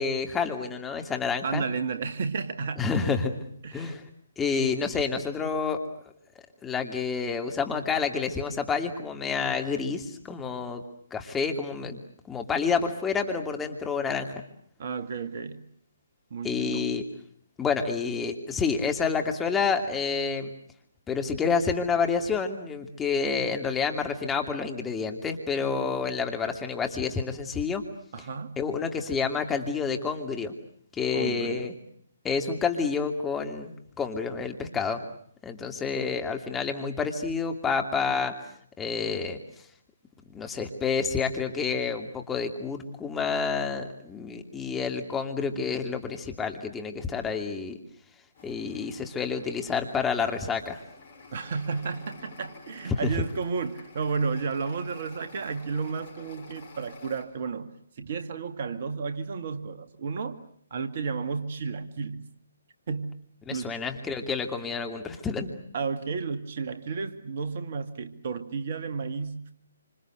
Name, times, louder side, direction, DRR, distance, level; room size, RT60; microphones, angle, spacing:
voice 1, 0.0-1.6 2.8-3.4 3.7-4.0 4.4-5.8 6.6-10.8 11.1-12.0 12.3-14.4 16.4-17.0 17.6-20.5 21.1-27.8 28.6-30.5 30.9-31.7 32.2-35.0 35.4-38.3 38.8-39.4 40.3-47.8 48.4-50.8 53.0-53.1 63.5-65.5, left 5 dB, 10° left, 4 dB, 2.7 m, -29 dB
voice 2, 1.4-2.9 3.6-4.0 14.8-15.6 16.3-16.9 28.1-28.6 31.1-31.7 51.3-57.7 58.0-60.4 60.7-62.2 62.9-63.1 63.5-63.8 65.7-69.5, right 5 dB, 50° right, 9 dB, 2.0 m, -32 dB
sound 1, 48.3-57.2, left 4 dB, 40° left, 6.8 m, -51 dB
27.5 x 26.5 x 8.0 m, 0.66 s
figure-of-eight pair, 140°, 0 cm